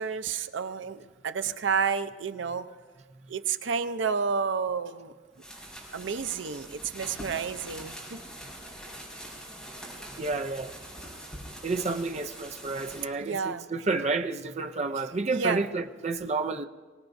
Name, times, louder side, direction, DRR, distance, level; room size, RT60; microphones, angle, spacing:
voice 1, 0.0-2.7 3.3-5.1 5.9-8.0 13.2-13.7 15.3-15.6, right 6 dB, 80° right, 0.6 m, -30 dB
sound 1, 5.3-13.0, equal, 5° left, 5.2 m, -43 dB
voice 2, 10.2-10.8 11.6-16.7, right 3 dB, 35° right, 0.5 m, -30 dB
24.5 x 18.5 x 2.6 m
head